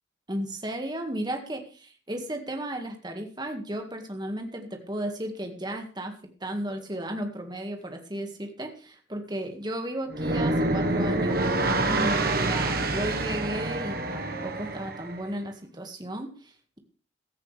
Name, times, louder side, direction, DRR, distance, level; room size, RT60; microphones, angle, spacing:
voice 1, 0.3-6.1 6.4-11.4 11.9-16.8, right 1 dB, 20° right, 4 dB, 1.9 m, -34 dB
sound 1, 10.1-15.2, right 2 dB, 50° right, 1.4 m, -27 dB
15.5 x 13.5 x 3.4 m, 0.38 s
head